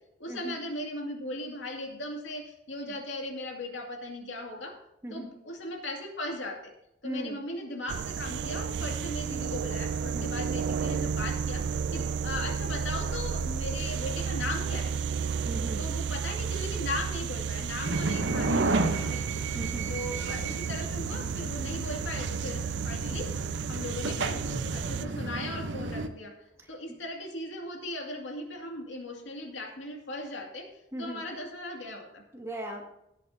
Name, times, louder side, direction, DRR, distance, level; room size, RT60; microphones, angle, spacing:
voice 1, 0.2-4.8 5.1-6.7 7.0-15.0 15.8-19.3 19.9-23.3 23.7-26.3 26.7-30.7 31.0-32.2, left 1 dB, 85° left, 1 dB, 2.4 m, -38 dB
voice 2, 7.0-7.4 10.1-10.3 15.4-15.8 19.5-19.9 30.9-31.2 32.3-32.8, equal, 15° right, 0 dB, 1.9 m, -38 dB
sound 1, 7.9-25.1, right 6 dB, 65° right, 0.3 m, -32 dB
sound 2, 17.8-26.1, right 2 dB, 85° right, 0.9 m, -32 dB
17.5 x 8.7 x 2.8 m, 0.83 s
head